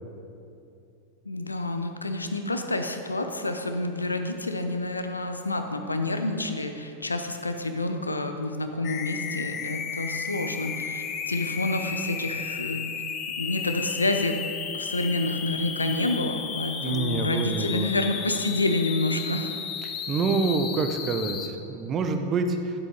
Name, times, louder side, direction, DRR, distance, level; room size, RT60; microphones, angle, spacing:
voice 1, 1.2-12.9 13.4-14.4 14.7-19.5, left 2 dB, 80° left, 6 dB, 0.6 m, -28 dB
sound 1, 8.8-21.5, left 7 dB, 35° left, 0.7 m, -34 dB
voice 2, 16.8-17.9 19.8-22.7, right 4 dB, 25° right, 6 dB, 0.7 m, -27 dB
10.0 x 7.9 x 4.0 m, 2.7 s
figure-of-eight pair, 90°, 0 cm